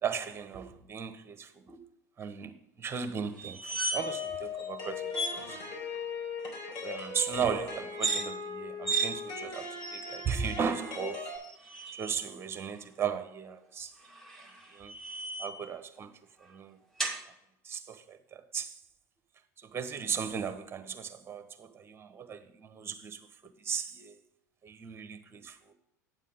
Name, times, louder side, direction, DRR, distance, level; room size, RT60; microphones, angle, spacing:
voice 1, 0.0-1.8 2.2-5.6 6.8-11.3 12.0-13.9 14.7-14.9 15.4-16.1 16.4-16.8 17.6-18.7 19.6-24.2 24.6-25.7, right 7 dB, 25° right, 1.2 m, -36 dB
sound 1, 3.4-4.3 4.6-4.7 5.1-5.4 7.9-8.2 8.8-9.1 9.8-10.4 11.3-12.1 14.0-15.6 17.0-17.2, right 3 dB, 5° left, 2.2 m, -34 dB
sound 2, 4.0-11.4, left 4 dB, 50° left, 3.9 m, -39 dB
9.5 x 7.4 x 3.8 m
hypercardioid pair, 85°, 10 cm